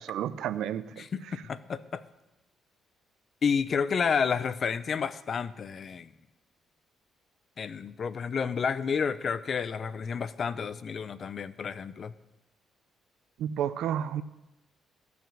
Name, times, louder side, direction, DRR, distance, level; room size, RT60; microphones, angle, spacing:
voice 1, 0.0-1.0 13.4-14.2, right 10 dB, 80° right, 14 dB, 0.5 m, -31 dB
voice 2, 1.0-2.0 3.4-6.1 7.6-12.1, left 6 dB, 50° left, 15 dB, 0.6 m, -30 dB
15.0 x 6.0 x 7.3 m, 0.97 s
cardioid pair, 90°, 0 cm